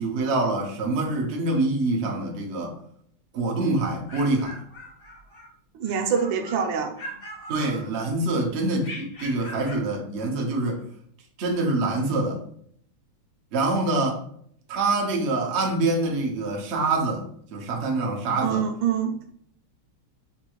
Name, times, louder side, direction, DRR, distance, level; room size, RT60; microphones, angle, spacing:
voice 1, 0.0-2.7 3.3-4.6 7.5-10.8 11.4-12.4 13.5-14.2 14.7-17.2 17.5-18.6, right 2 dB, 90° right, -1 dB, 0.5 m, -25 dB
sound 1, 3.8-5.5 5.8-6.6 6.9-8.2 8.8-9.9, equal, 60° left, 0.5 m, -41 dB
voice 2, 5.7-7.0 18.4-19.4, right 7 dB, 75° right, 4 dB, 1.3 m, -25 dB
5.3 x 2.3 x 2.9 m, 0.65 s
omnidirectional pair, 2.3 m